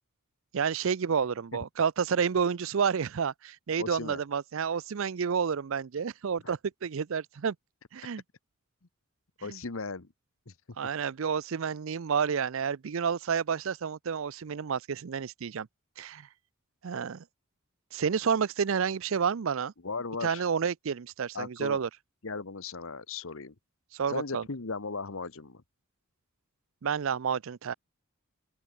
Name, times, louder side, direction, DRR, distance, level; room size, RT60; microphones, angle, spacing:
voice 1, 0.5-7.6 7.9-8.2 9.5-9.6 10.8-15.7 16.0-16.3 16.8-17.2 17.9-19.7 20.2-21.9 23.9-24.4 26.8-27.7, right 6 dB, 65° right, 0.5 m, -30 dB
voice 2, 3.8-4.2 6.4-6.5 9.4-10.1 10.5-10.6 19.8-20.4 21.3-21.8 22.2-23.5 24.1-25.6, left 4 dB, 65° left, 1.1 m, -37 dB
open air
head